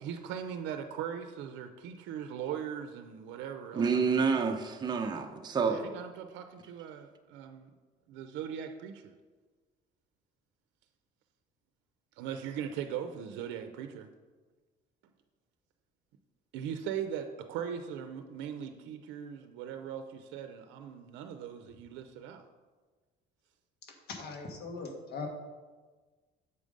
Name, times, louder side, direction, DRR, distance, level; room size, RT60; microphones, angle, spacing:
voice 1, 0.0-3.8 5.6-7.7 8.1-9.1 12.2-14.1 16.5-22.4, right 8 dB, 90° right, 7 dB, 0.5 m, -39 dB
voice 2, 3.8-5.9, right 5 dB, 25° right, 4 dB, 0.6 m, -28 dB
voice 3, 24.1-25.3, left 4 dB, 60° left, 2 dB, 1.4 m, -40 dB
6.8 x 5.0 x 5.2 m, 1.3 s
cardioid pair, 120°, 19 cm